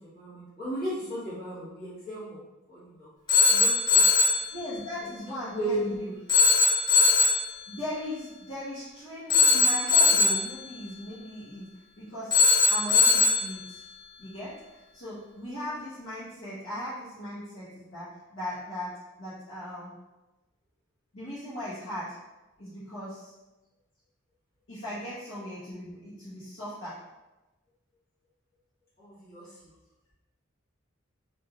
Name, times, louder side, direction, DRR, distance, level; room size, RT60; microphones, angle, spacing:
voice 1, 0.0-2.4 2.7-3.1 3.4-4.0 5.0-6.0 29.0-29.7, right 1 dB, 45° left, -10 dB, 1.5 m, -35 dB
Telephone, 3.3-4.4 6.3-7.5 9.3-10.5 12.3-13.5, left 4 dB, 20° left, 0.5 m, -20 dB
voice 2, 4.5-6.1 7.7-11.7 12.0-12.4 12.7-13.8 14.2-19.9 21.1-22.1 22.6-23.3 24.7-27.0, left 1 dB, 75° left, -13 dB, 1.0 m, -38 dB
3.1 x 2.5 x 2.3 m, 1.1 s
head